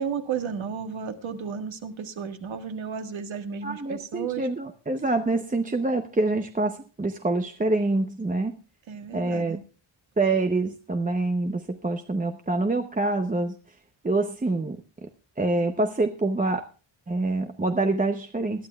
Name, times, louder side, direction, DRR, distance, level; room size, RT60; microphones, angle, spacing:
voice 1, 0.0-4.5 8.9-9.6, right 6 dB, 70° right, 7 dB, 1.7 m, -33 dB
voice 2, 3.6-8.6 9.1-9.6 10.2-13.8 14.0-15.1 15.4-16.6 17.1-18.7, right 2 dB, 15° right, 6 dB, 0.7 m, -26 dB
20.5 x 12.5 x 2.3 m, 0.36 s
wide cardioid pair, 170°, 48 cm